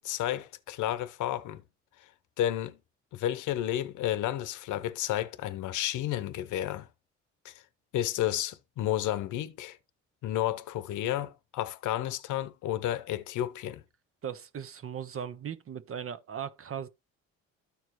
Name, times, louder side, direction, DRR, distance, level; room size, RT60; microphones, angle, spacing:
voice 1, 0.0-1.6 2.4-2.8 3.1-6.9 7.4-7.6 7.9-9.8 10.2-13.8, left 12 dB, 85° left, 0.8 m, -31 dB
voice 2, 14.2-16.9, right 8 dB, 45° right, 0.9 m, -38 dB
13.0 x 4.6 x 3.0 m
cardioid pair, 90°, 30 cm